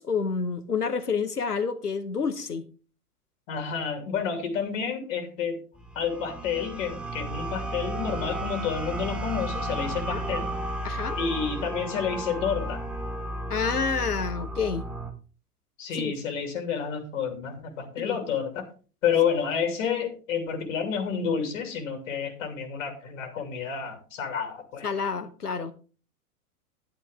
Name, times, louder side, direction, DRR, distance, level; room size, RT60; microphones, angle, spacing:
voice 1, 0.0-2.7 10.1-10.3 10.8-11.2 13.5-14.9 15.9-16.2 18.0-18.2 24.8-25.7, left 5 dB, 80° left, 12 dB, 1.1 m, -29 dB
voice 2, 3.5-5.6 5.9-10.5 11.2-12.8 15.8-18.7 19.0-24.9, left 7 dB, 50° left, 7 dB, 2.8 m, -29 dB
sound 1, 5.7-15.1, right 1 dB, ahead, 1.7 m, -33 dB
11.0 x 9.5 x 3.6 m, 0.36 s
figure-of-eight pair, 95°, 46 cm